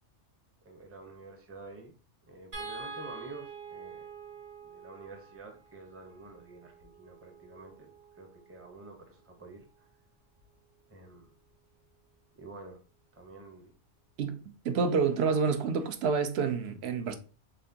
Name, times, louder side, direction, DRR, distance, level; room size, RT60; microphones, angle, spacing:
voice 1, 0.6-1.9 2.2-4.1 4.6-7.9 8.2-9.9 10.9-11.3 12.4-12.8 13.1-13.7, right 3 dB, 15° right, 0.7 m, -48 dB
sound 1, 2.5-8.8 10.4-10.5 10.9-11.1, right 4 dB, 85° right, 2.3 m, -47 dB
voice 2, 14.6-17.1, right 5 dB, 65° right, 0.8 m, -28 dB
4.2 x 3.7 x 2.7 m
omnidirectional pair, 1.2 m